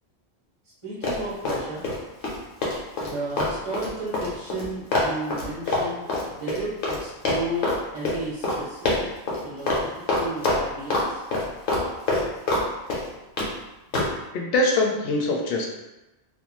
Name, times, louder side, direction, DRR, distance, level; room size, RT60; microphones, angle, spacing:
voice 1, 0.8-1.8 3.0-9.1 9.4-11.2, right 2 dB, 35° right, -6 dB, 0.6 m, -33 dB
Run, 1.0-2.0 2.2-7.0 7.3-7.8 8.1-8.2 8.4-8.6 8.9-9.4 9.7-9.8 10.1-11.0 11.3-12.6 12.9-13.5 13.9-14.1, left 2 dB, 85° left, 1.1 m, -25 dB
voice 2, 14.3-15.7, left 2 dB, 65° left, 0 dB, 0.7 m, -23 dB
2.5 x 2.2 x 3.0 m, 1.0 s
omnidirectional pair, 1.1 m